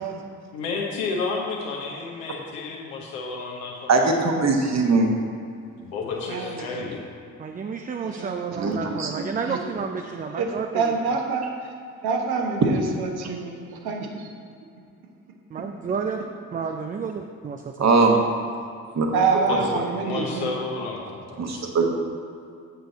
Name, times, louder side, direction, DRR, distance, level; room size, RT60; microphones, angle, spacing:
voice 1, 0.5-4.2 5.8-7.1 19.5-21.6, left 4 dB, 70° left, -2 dB, 1.3 m, -31 dB
voice 2, 3.9-5.1 8.6-9.1 17.8-18.2 18.9-19.1 21.4-21.9, right 3 dB, 40° right, 2 dB, 1.3 m, -20 dB
voice 3, 6.3-6.6 8.1-8.7 9.2-9.6 10.4-11.7 12.0-14.3 15.6-15.7 19.1-20.5, right 4 dB, 60° right, 2 dB, 1.2 m, -27 dB
voice 4, 7.4-10.8 15.5-16.2 16.5-17.9, right 5 dB, 20° right, 4 dB, 0.4 m, -31 dB
7.8 x 6.8 x 4.1 m, 2.4 s
figure-of-eight pair, 40°, 42 cm